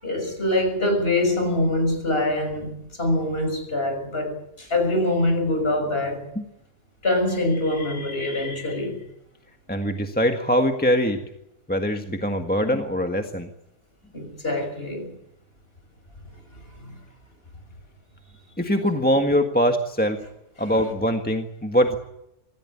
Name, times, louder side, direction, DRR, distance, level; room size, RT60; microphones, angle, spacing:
voice 1, 0.0-6.3 7.0-9.0 14.1-15.1 16.8-16.9 20.6-20.7, left 1 dB, 35° left, 6.4 m, -24 dB
voice 2, 9.7-11.2 11.7-13.5 18.6-20.2 20.6-22.0, equal, 5° left, 1.5 m, -22 dB
26.0 x 15.5 x 9.9 m
omnidirectional pair, 1.7 m